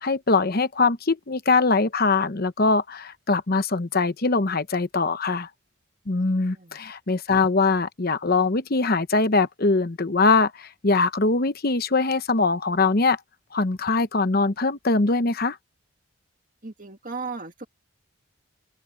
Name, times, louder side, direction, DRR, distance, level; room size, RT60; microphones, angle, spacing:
voice 1, 0.0-5.5 6.1-13.2 13.5-15.6, left 3 dB, 45° left, 0.9 m, -22 dB
voice 2, 16.6-17.7, right 4 dB, 40° right, 2.1 m, -36 dB
open air
head